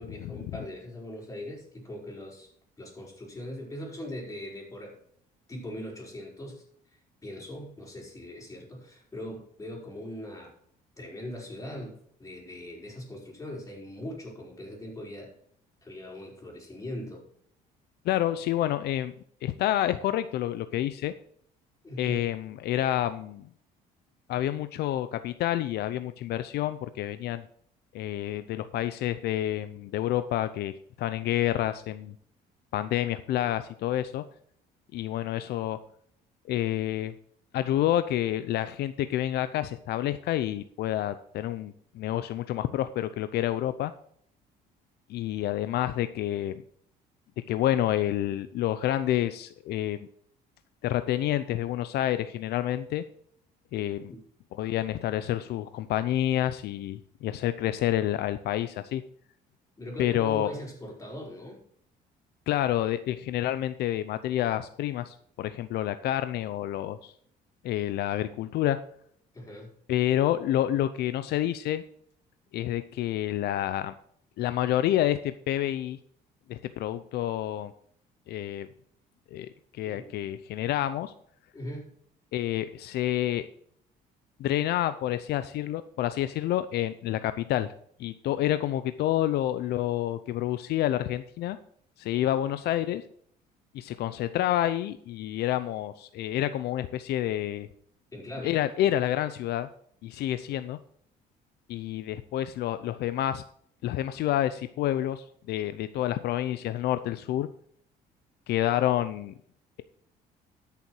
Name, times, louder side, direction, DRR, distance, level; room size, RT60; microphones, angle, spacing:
voice 1, 0.0-5.0 5.5-10.6 11.0-15.3 15.8-17.2 21.8-22.2 54.1-54.2 59.8-61.6 69.3-69.7 79.9-80.1 81.5-81.9 98.1-98.6, left 1 dB, 20° left, -2 dB, 5.1 m, -40 dB
voice 2, 18.0-19.1 19.4-21.1 22.0-23.4 24.3-27.4 27.9-32.1 32.7-34.2 34.9-35.8 36.5-37.1 37.5-43.9 45.1-46.5 47.5-50.0 50.8-53.0 53.7-54.1 54.5-59.0 60.0-60.5 62.5-67.1 67.6-68.8 69.9-71.8 72.5-73.9 74.4-76.0 76.5-77.7 78.3-78.7 79.3-81.1 82.3-83.5 84.4-87.7 88.0-91.6 92.0-93.0 93.7-97.7 98.4-99.7 100.0-100.8 101.7-103.4 103.8-107.5 108.5-109.3, left 13 dB, 75° left, 12 dB, 0.6 m, -28 dB
13.0 x 7.0 x 4.7 m, 0.65 s
cardioid pair, 110°, 17 cm